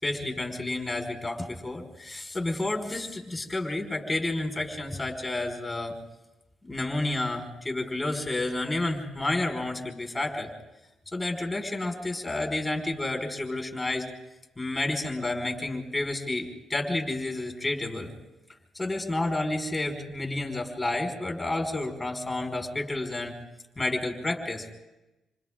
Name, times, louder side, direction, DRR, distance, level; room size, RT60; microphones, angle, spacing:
voice 1, 0.0-6.0 6.6-10.5 11.1-14.1 14.6-18.1 18.7-23.3 23.8-24.7, left 2 dB, 10° left, 2 dB, 5.1 m, -30 dB
28.5 x 27.0 x 3.8 m, 0.97 s
cardioid pair, 90°, 0 cm